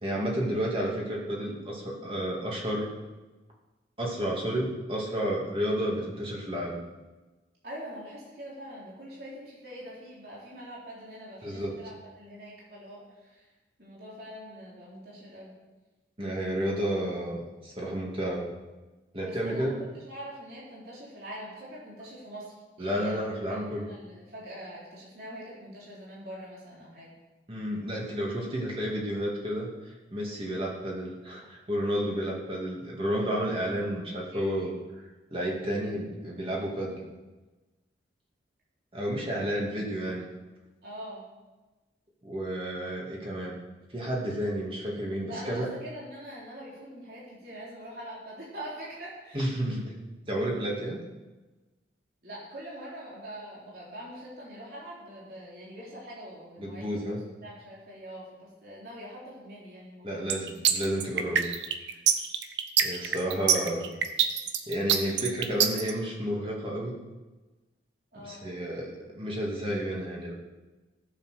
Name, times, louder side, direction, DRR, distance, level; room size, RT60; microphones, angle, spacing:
voice 1, 0.0-2.9 4.0-6.8 11.4-11.7 16.2-18.5 19.1-19.7 22.8-23.9 27.5-34.7 35.3-37.0 38.9-40.3 42.2-43.6 43.9-45.7 49.3-49.9 50.3-51.0 56.6-57.2 60.0-61.5 62.8-63.9 64.7-67.0 68.2-70.3, equal, 30° right, -3 dB, 2.6 m, -31 dB
voice 2, 7.6-13.5 13.8-15.5 19.2-23.2 23.5-27.1 34.3-34.5 39.3-39.9 40.8-41.2 45.2-49.4 52.2-57.1 57.4-60.3 68.1-68.4, equal, 55° right, -6 dB, 3.9 m, -44 dB
sound 1, 60.3-65.9, right 8 dB, 75° right, 0.9 m, -24 dB
15.5 x 7.4 x 6.6 m, 1.2 s
head